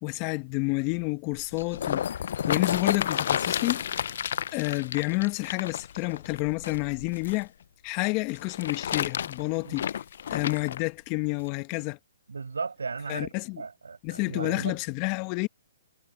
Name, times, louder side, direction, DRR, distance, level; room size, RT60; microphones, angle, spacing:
voice 1, 0.0-2.1 2.5-3.8 4.5-7.5 7.8-9.9 10.3-12.0 13.1-13.6 14.0-15.5, left 27 dB, 35° left, 1.3 m, -29 dB
sound 1, 1.3-7.4 8.3-10.8 11.5-11.6, left 9 dB, 60° left, 0.5 m, -31 dB
voice 2, 12.3-14.8, right 4 dB, 85° right, 7.4 m, -36 dB
hypercardioid pair, 135°, 0 cm